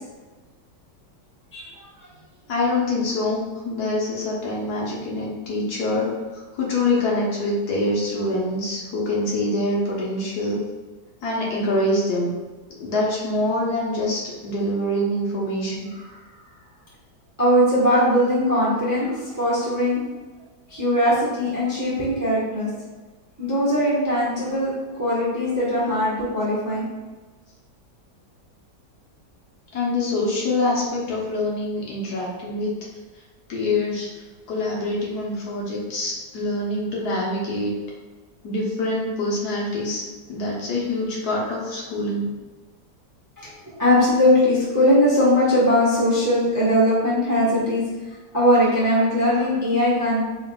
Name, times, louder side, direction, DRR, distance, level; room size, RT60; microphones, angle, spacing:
voice 1, 2.5-10.6 11.2-12.3 12.8-15.9 29.7-32.7 33.5-34.1 34.5-37.7 38.4-40.0 40.3-42.3, left 1 dB, 70° left, -3 dB, 1.3 m, -25 dB
voice 2, 17.4-20.0 20.7-22.7 23.4-24.7 25.0-26.8 43.4-47.8 48.3-50.2, equal, 15° right, -8 dB, 0.7 m, -20 dB
4.7 x 3.2 x 2.2 m, 1.3 s
omnidirectional pair, 1.8 m